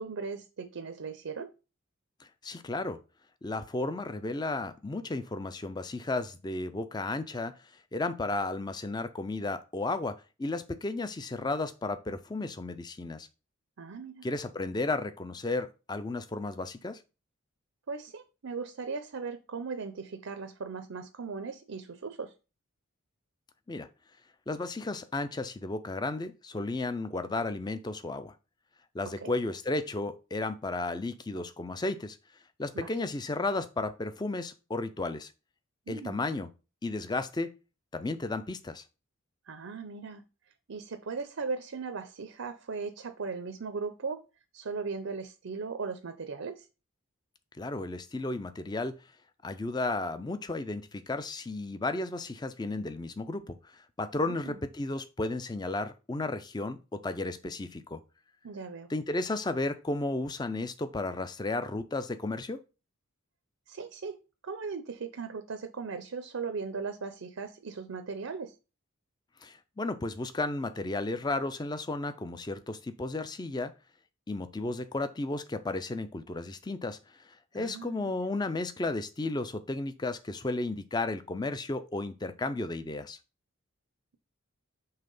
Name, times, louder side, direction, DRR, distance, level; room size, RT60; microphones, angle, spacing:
voice 1, 0.0-1.5 13.8-14.3 17.9-22.3 29.2-29.3 32.7-32.9 35.9-36.2 39.5-40.2 40.7-44.2 44.5-46.7 54.2-54.6 58.4-58.9 63.7-64.2 64.4-68.5 77.5-78.2, right 4 dB, 70° right, 8 dB, 0.6 m, -38 dB
voice 2, 2.4-3.0 3.4-7.5 7.9-13.3 14.2-17.0 23.7-23.9 24.5-28.3 28.9-32.2 32.6-35.3 35.9-36.5 36.8-37.5 37.9-38.8 47.6-49.0 49.4-53.7 54.0-58.0 58.9-62.6 69.4-73.7 74.3-77.0 77.5-83.2, left 2 dB, 20° left, 11 dB, 0.4 m, -33 dB
5.6 x 3.3 x 5.3 m, 0.31 s
head